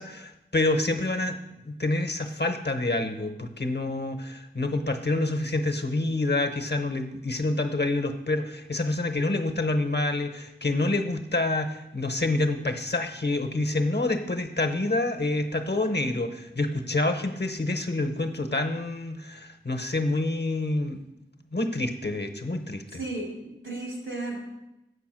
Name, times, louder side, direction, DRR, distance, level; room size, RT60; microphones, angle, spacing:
voice 1, 0.0-1.4 1.6-21.0 21.5-22.8, left 2 dB, 55° left, 7 dB, 0.8 m, -27 dB
voice 2, 22.9-24.4, right 2 dB, 90° right, -2 dB, 2.6 m, -34 dB
8.1 x 4.9 x 6.1 m, 0.92 s
wide cardioid pair, 50°, 20 cm